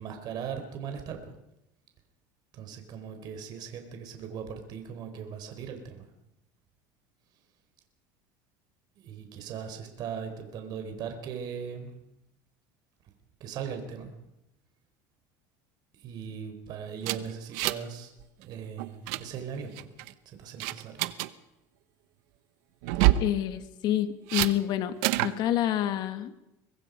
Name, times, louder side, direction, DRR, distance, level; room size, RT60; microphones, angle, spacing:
voice 1, 0.0-1.3 2.5-6.1 9.0-11.9 13.4-14.1 16.0-18.1 18.4-19.9 20.3-21.0, right 7 dB, 50° right, 6 dB, 4.3 m, -39 dB
sound 1, 17.0-18.0 18.2-18.4 18.8-19.2 19.8-20.1 20.6-21.3 22.8-23.3 24.3-24.5 25.0-25.4, right 15 dB, 80° right, 1.0 m, -26 dB
voice 2, 23.2-25.0 25.2-26.4, left 12 dB, 55° left, 9 dB, 1.8 m, -28 dB
24.0 x 20.5 x 5.3 m, 0.89 s
supercardioid pair, 125°, 9 cm